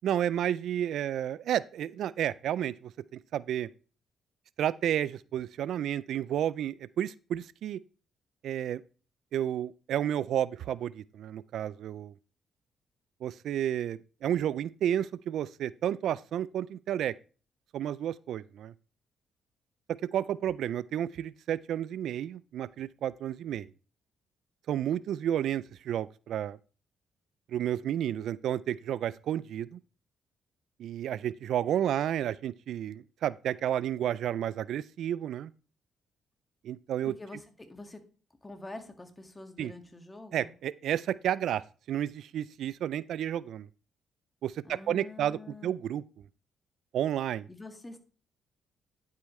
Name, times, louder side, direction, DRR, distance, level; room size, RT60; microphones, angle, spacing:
voice 1, 0.0-2.9 3.3-3.7 4.6-7.8 8.4-8.8 9.3-12.1 13.2-17.1 17.7-18.7 20.1-23.7 24.7-26.6 27.5-29.8 30.8-35.5 36.6-37.1 39.6-39.7 40.3-43.7 44.4-46.0 46.9-47.5, right 10 dB, 75° right, 0.3 m, -31 dB
voice 2, 37.1-38.0 38.4-40.5 44.6-45.8 47.5-48.0, left 2 dB, 15° left, 1.8 m, -46 dB
9.8 x 8.2 x 3.1 m
cardioid pair, 90°, 0 cm